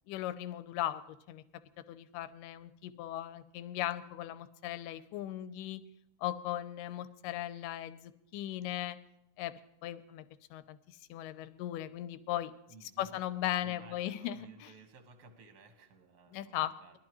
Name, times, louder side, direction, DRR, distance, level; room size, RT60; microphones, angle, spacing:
voice 1, 0.1-1.0 1.3-1.4 1.9-5.8 6.2-9.0 9.4-9.5 9.8-12.5 12.8-14.7 16.3-17.0, left 13 dB, 85° left, 13 dB, 2.2 m, -38 dB
voice 2, 12.7-13.2 13.6-17.0, right 3 dB, 50° right, 5 dB, 1.1 m, -57 dB
20.5 x 12.0 x 3.1 m, 0.80 s
omnidirectional pair, 3.9 m